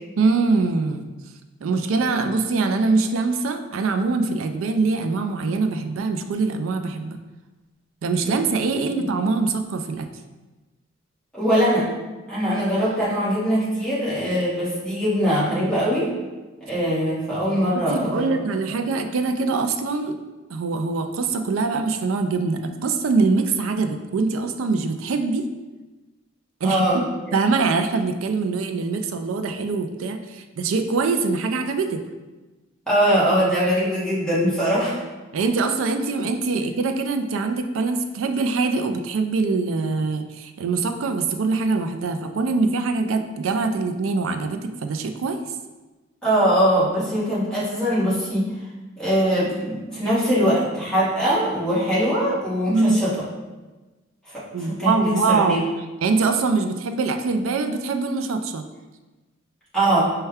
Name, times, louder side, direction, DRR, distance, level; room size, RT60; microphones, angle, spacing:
voice 1, 0.2-1.1 1.6-7.2 8.0-10.1 17.7-20.1 20.5-25.4 26.6-27.0 27.3-32.0 35.3-45.4 52.7-53.2 54.5-55.7 56.0-58.6, right 4 dB, 85° right, 7 dB, 0.4 m, -23 dB
voice 2, 11.3-11.9 12.3-16.1 16.6-18.4 26.6-27.0 32.9-35.0 46.2-48.5 49.0-53.1 54.3-55.6 59.7-60.1, equal, 5° left, -10 dB, 1.2 m, -22 dB
5.4 x 2.2 x 3.4 m, 1.2 s
head